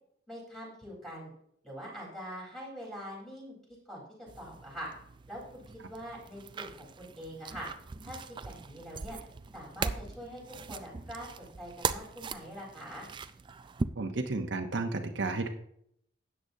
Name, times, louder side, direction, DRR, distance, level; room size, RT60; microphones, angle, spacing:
voice 1, 0.3-1.3 1.6-3.5 3.9-4.0 4.4-4.9 5.3-5.6 5.9-7.7 8.0-9.2 9.5-10.4 10.7-13.1, equal, ahead, -5 dB, 3.8 m, -43 dB
sound 1, 4.3-13.8, right 4 dB, 25° right, 0.3 m, -40 dB
voice 2, 14.0-15.5, right 3 dB, 65° right, 4 dB, 0.8 m, -32 dB
13.0 x 8.8 x 2.7 m, 0.71 s
head